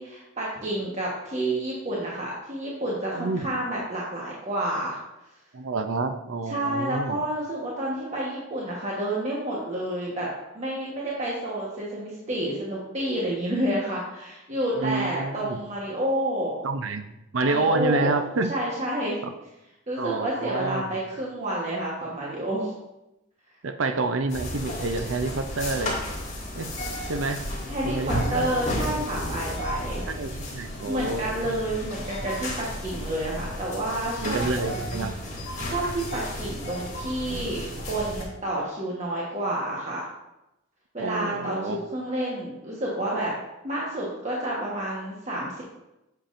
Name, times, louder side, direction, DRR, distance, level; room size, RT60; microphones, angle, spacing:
voice 1, 0.0-5.0 6.5-10.3 10.5-16.6 17.4-18.1 18.5-19.2 19.9-22.7 27.6-30.0 30.9-35.1 35.6-40.1 40.9-43.3 43.6-45.6, right 1 dB, 35° right, -5 dB, 1.3 m, -29 dB
voice 2, 3.1-3.6 5.5-7.2 14.8-15.6 16.6-17.1 17.3-18.5 19.2-19.3 20.0-21.0 23.6-25.9 26.5-26.7 27.1-27.4 27.8-28.7 30.0-31.5 34.2-35.2 41.0-41.8, right 3 dB, 85° right, 8 dB, 0.6 m, -28 dB
sound 1, 24.3-38.2, left 1 dB, 35° left, 2.1 m, -33 dB
9.1 x 7.2 x 2.6 m, 0.94 s
head